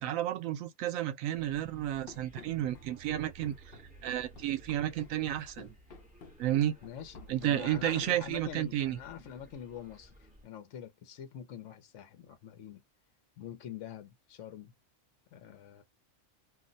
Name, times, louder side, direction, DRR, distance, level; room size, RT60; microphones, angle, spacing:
voice 1, 0.0-3.6 4.0-5.7 6.4-6.7 7.3-9.0, right 12 dB, 85° right, 1.0 m, -32 dB
sound 1, 1.3-10.4, right 2 dB, 5° right, 0.9 m, -56 dB
Run, 2.1-8.7, left 3 dB, 50° left, 0.8 m, -53 dB
voice 2, 6.8-12.8 13.4-14.7 15.3-15.8, left 9 dB, 70° left, 1.0 m, -45 dB
2.6 x 2.1 x 3.7 m
omnidirectional pair, 1.4 m